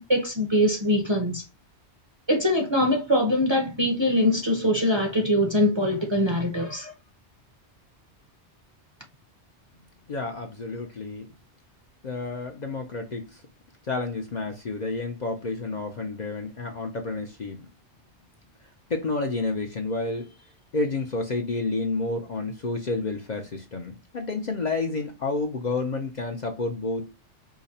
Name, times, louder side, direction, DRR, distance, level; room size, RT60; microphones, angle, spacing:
voice 1, 0.1-1.4 2.3-6.9, left 1 dB, 30° right, 0.7 m, -23 dB
voice 2, 10.1-11.3 12.0-13.4 13.9-17.7 18.9-20.3 20.7-27.1, left 3 dB, 45° left, 0.6 m, -30 dB
4.8 x 2.2 x 2.7 m
omnidirectional pair, 1.2 m